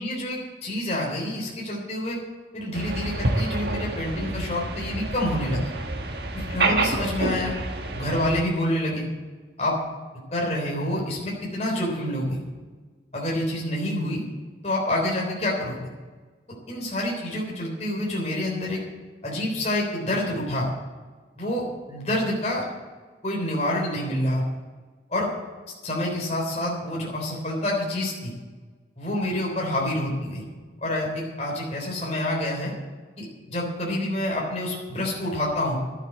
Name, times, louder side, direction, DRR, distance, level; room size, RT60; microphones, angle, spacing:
voice 1, 0.0-2.2 2.5-5.6 6.5-7.5 7.9-9.1 9.6-9.8 10.3-12.4 13.1-14.2 14.6-15.8 16.7-18.8 19.2-20.7 21.4-22.7 23.2-24.4 25.1-25.3 25.8-28.3 29.0-30.5 30.8-32.7 33.2-35.8, left 1 dB, 35° left, -3 dB, 3.7 m, -27 dB
sound 1, 2.7-8.4, right 2 dB, 60° right, 1.5 m, -28 dB
12.0 x 8.7 x 7.7 m, 1.4 s
head